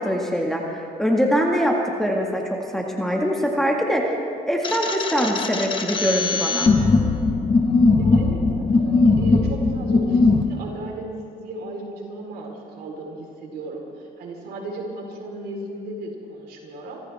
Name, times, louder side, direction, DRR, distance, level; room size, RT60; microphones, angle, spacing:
voice 1, 0.0-4.2 4.5-6.7, equal, ahead, -1 dB, 1.9 m, -23 dB
sound 1, 4.6-10.4, left 3 dB, 30° left, 1.4 m, -19 dB
voice 2, 8.0-17.0, right 2 dB, 70° right, -1 dB, 4.3 m, -35 dB
26.0 x 14.5 x 3.6 m, 2.4 s
cardioid pair, 110°, 17 cm